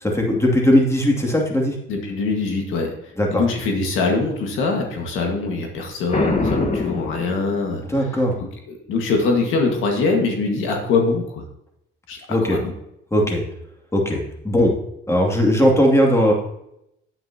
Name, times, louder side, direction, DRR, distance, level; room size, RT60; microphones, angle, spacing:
voice 1, 0.0-1.7 3.2-3.4 7.9-8.4 12.3-12.6 13.1-13.4 13.9-14.7 15.1-16.3, equal, 15° left, 0 dB, 2.5 m, -18 dB
voice 2, 1.9-8.1 8.7-11.4 12.1-12.7, left 3 dB, 90° left, 2 dB, 1.7 m, -23 dB
Boom, 6.1-8.0, left 3 dB, 35° left, 1.4 m, -24 dB
9.1 x 8.8 x 2.9 m, 0.79 s
cardioid pair, 90°, 20 cm